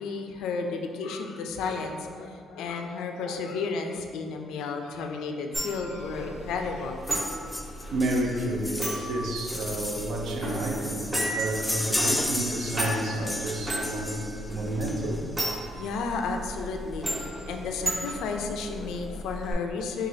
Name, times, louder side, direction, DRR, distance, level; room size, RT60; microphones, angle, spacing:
voice 1, 0.0-7.0 7.3-7.5 15.7-20.1, left 4 dB, 85° left, 4 dB, 0.3 m, -33 dB
sound 1, 5.5-19.5, right 1 dB, 30° right, 1.5 m, -35 dB
sound 2, 7.1-15.4 16.5-16.6 16.9-17.0 17.2-17.4 17.7-18.3 18.8-18.9, left 1 dB, 10° left, 0.3 m, -34 dB
voice 2, 7.9-15.2, right 1 dB, 75° right, 1 dB, 0.5 m, -30 dB
6.1 x 2.3 x 2.7 m, 2.2 s
cardioid pair, 90°, 0 cm